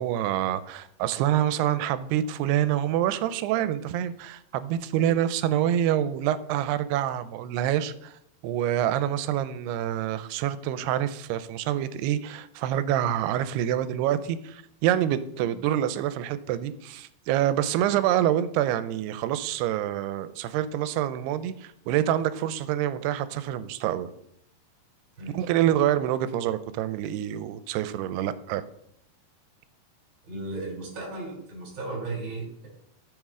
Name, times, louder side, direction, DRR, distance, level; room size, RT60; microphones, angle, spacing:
voice 1, 0.0-8.2 8.4-24.1 25.3-28.6, right 11 dB, 90° right, 13 dB, 2.6 m, -26 dB
voice 2, 25.2-25.7 30.2-32.7, right 2 dB, 30° right, -1 dB, 3.3 m, -36 dB
10.5 x 6.9 x 3.7 m, 0.74 s
omnidirectional pair, 4.6 m